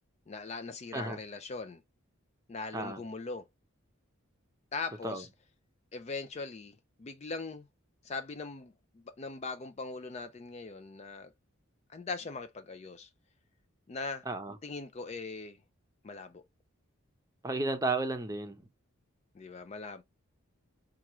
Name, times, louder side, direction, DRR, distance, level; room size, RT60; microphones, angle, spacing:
voice 1, 0.3-1.8 2.5-3.5 4.7-5.3 5.9-7.7 8.0-11.3 11.9-13.1 13.9-14.2 14.6-15.6 16.0-16.4 19.3-20.0, left 4 dB, 30° left, 0.3 m, -40 dB
voice 2, 14.3-14.6 17.4-18.6, right 2 dB, 15° right, 0.6 m, -33 dB
5.8 x 2.4 x 3.0 m
head